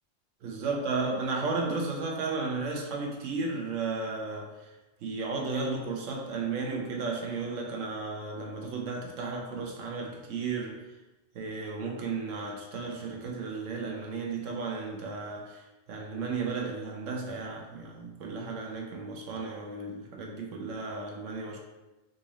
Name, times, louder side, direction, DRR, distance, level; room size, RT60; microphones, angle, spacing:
voice 1, 0.4-4.7 5.0-10.8 11.3-21.6, right 4 dB, 75° right, 0 dB, 1.0 m, -34 dB
3.7 x 2.6 x 3.0 m, 1.1 s
omnidirectional pair, 1.3 m